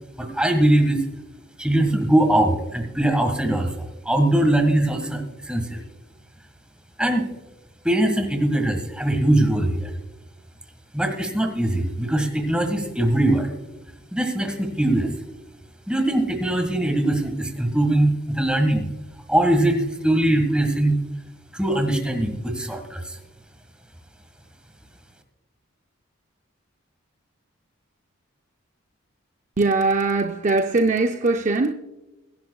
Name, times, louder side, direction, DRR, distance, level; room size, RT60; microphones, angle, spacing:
voice 1, 0.2-1.0 1.6-5.8 7.0-7.3 7.8-9.9 10.9-13.5 14.1-15.1 15.9-18.9 19.3-21.0 21.5-23.1, right 1 dB, 5° right, 1.6 m, -21 dB
voice 2, 29.6-31.7, right 3 dB, 35° right, 0.5 m, -21 dB
22.0 x 11.0 x 2.3 m
head